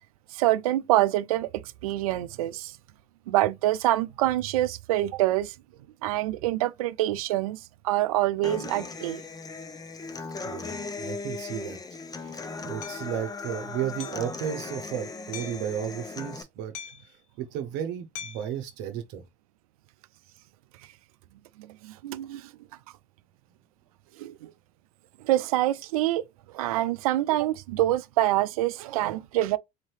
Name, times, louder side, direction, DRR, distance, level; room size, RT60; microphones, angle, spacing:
voice 1, 0.3-2.8 3.3-5.5 6.0-9.2 21.6-22.5 24.2-24.5 25.2-26.2 26.5-29.6, right 15 dB, 90° right, 0.4 m, -26 dB
Human voice / Acoustic guitar, 8.4-16.4, left 4 dB, 20° left, 0.7 m, -37 dB
voice 2, 10.1-11.8 12.2-16.7 17.1-19.2, right 9 dB, 70° right, 0.8 m, -34 dB
Hammer, 12.8-13.0 14.0-14.3 15.3-15.7 16.7-17.2 18.1-18.5, left 9 dB, 80° left, 0.6 m, -41 dB
4.0 x 2.7 x 3.2 m
supercardioid pair, 85°, 18 cm